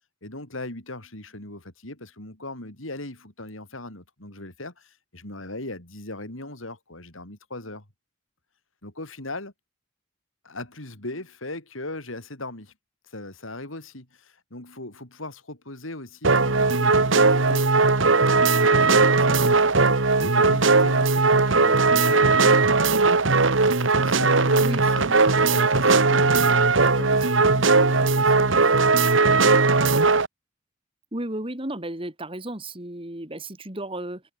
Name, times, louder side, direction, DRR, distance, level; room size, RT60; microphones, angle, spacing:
voice 1, 0.2-7.9 8.8-9.5 10.4-12.7 13.1-17.6 18.2-18.3 18.8-23.0 23.8-29.0, left 2 dB, 80° left, 5.6 m, -38 dB
sound 1, 16.2-30.3, right 3 dB, 70° right, 1.5 m, -19 dB
voice 2, 31.1-34.2, right 1 dB, 25° right, 2.8 m, -33 dB
head